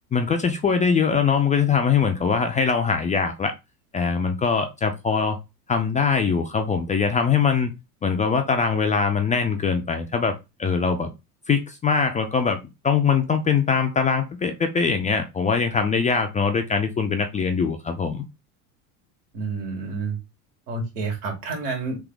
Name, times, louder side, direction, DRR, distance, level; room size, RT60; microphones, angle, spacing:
voice 1, 0.1-3.5 3.9-5.4 5.7-7.7 8.0-10.3 10.6-11.1 11.5-12.6 12.8-18.2, left 5 dB, 20° left, 0.4 m, -22 dB
voice 2, 19.3-20.2 20.7-22.0, right 3 dB, 75° right, 2.0 m, -29 dB
3.6 x 2.7 x 3.8 m
hypercardioid pair, 100°, 46 cm